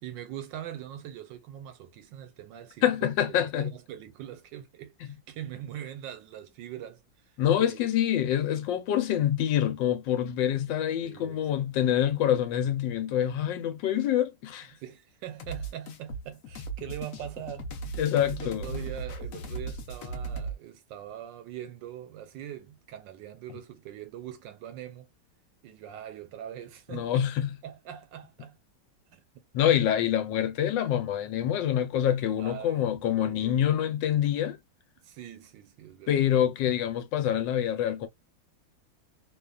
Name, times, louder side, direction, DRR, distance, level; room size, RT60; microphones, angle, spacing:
voice 1, 0.0-7.3 7.6-7.8 11.0-11.7 14.7-17.7 18.4-25.1 25.6-28.6 29.1-29.4 29.8-29.9 30.6-30.7 32.4-33.8 35.0-36.3, right 11 dB, 80° right, 1.3 m, -42 dB
voice 2, 2.8-3.7 7.4-14.7 18.0-18.6 26.9-27.6 29.5-34.6 36.1-38.1, left 10 dB, 80° left, 1.3 m, -26 dB
sound 1, 15.4-20.6, right 3 dB, 65° left, 0.9 m, -37 dB
3.0 x 2.3 x 2.2 m
omnidirectional pair, 2.0 m